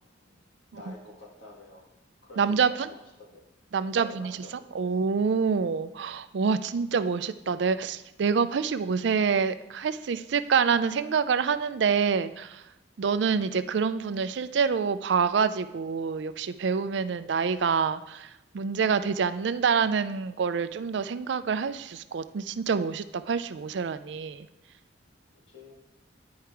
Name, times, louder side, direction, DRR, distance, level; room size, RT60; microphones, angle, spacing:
voice 1, 0.7-1.9 2.2-3.4 3.9-4.9 25.5-25.9, left 2 dB, 75° left, -2 dB, 2.2 m, -48 dB
voice 2, 2.4-2.9 3.7-4.3 4.7-12.6 13.0-18.3 18.5-24.5, right 6 dB, 65° right, 13 dB, 0.4 m, -26 dB
10.0 x 4.7 x 4.5 m, 0.95 s
head